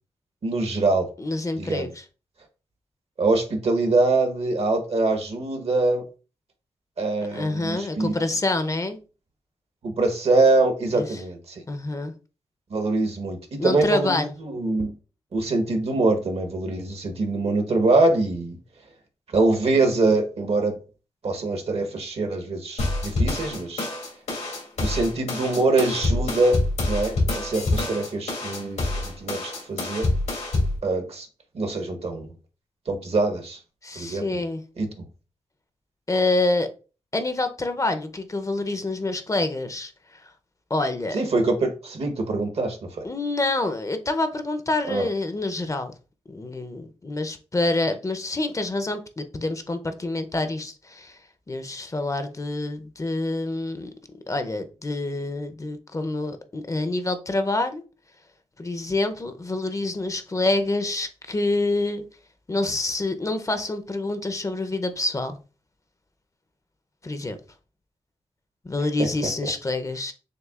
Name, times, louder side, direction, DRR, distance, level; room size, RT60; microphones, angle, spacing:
voice 1, 0.4-1.1 1.6-1.9 3.2-6.0 7.0-8.1 9.8-11.6 12.7-14.9 15.3-18.6 19.3-20.7 21.2-23.9 24.8-26.6 26.9-30.0 30.8-31.3 31.5-32.3 32.9-33.6 33.9-34.4 34.8-34.9 41.1-43.1 44.9-45.1, right 2 dB, 60° right, 1.1 m, -24 dB
voice 2, 1.2-2.0 7.3-9.0 10.9-11.2 11.7-12.1 13.6-14.3 33.8-34.6 36.1-36.7 37.1-40.3 40.7-41.2 43.0-45.9 46.3-51.2 51.5-53.9 54.3-57.8 58.6-62.0 62.5-65.4 67.0-67.4 68.6-70.1, left 2 dB, 30° left, 0.6 m, -27 dB
sound 1, 22.8-30.8, left 2 dB, 90° left, 2.1 m, -26 dB
6.5 x 2.4 x 2.4 m
cardioid pair, 60°, 11 cm